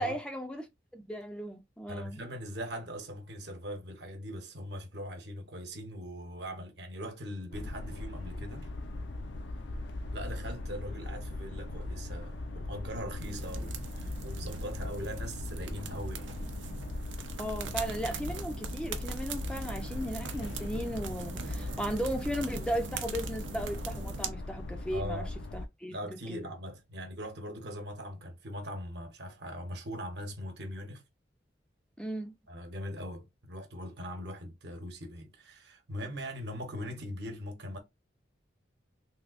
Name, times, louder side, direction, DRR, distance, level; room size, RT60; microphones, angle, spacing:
voice 1, 0.0-2.2 17.4-26.0 26.3-26.4 32.0-32.3, equal, 5° left, 0.4 m, -36 dB
voice 2, 1.9-8.7 10.1-16.3 24.9-25.3 25.9-31.0 32.5-37.8, equal, 65° right, 1.0 m, -41 dB
sound 1, 7.5-25.7, left 2 dB, 75° left, 0.5 m, -39 dB
sound 2, 13.2-24.3, right 4 dB, 85° right, 0.6 m, -41 dB
3.4 x 2.6 x 2.4 m
head